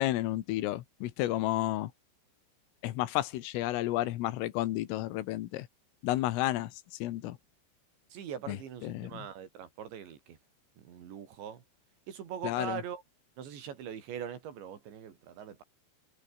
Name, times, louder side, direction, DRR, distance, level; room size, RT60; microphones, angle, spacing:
voice 1, 0.0-1.9 2.8-5.7 6.0-6.7 7.0-7.4 8.5-8.6 8.8-9.1 12.4-12.8, left 15 dB, 85° left, 4.0 m, -31 dB
voice 2, 8.1-10.4 10.8-11.6 12.1-13.0 13.4-15.6, right 8 dB, 65° right, 5.5 m, -42 dB
omnidirectional pair, 5.7 m